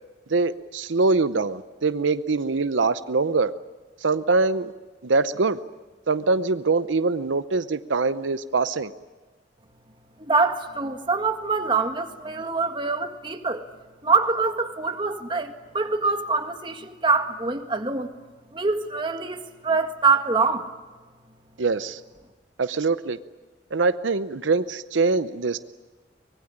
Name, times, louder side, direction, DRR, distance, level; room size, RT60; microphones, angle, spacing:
voice 1, 0.3-3.5 4.0-4.7 5.0-5.6 6.1-8.9 21.6-22.0 22.6-23.2 23.7-25.6, right 3 dB, 90° right, 13 dB, 0.7 m, -23 dB
voice 2, 10.2-13.6 14.0-18.1 18.5-20.7, right 4 dB, 25° right, 6 dB, 1.7 m, -24 dB
24.0 x 20.0 x 9.9 m, 1.3 s
head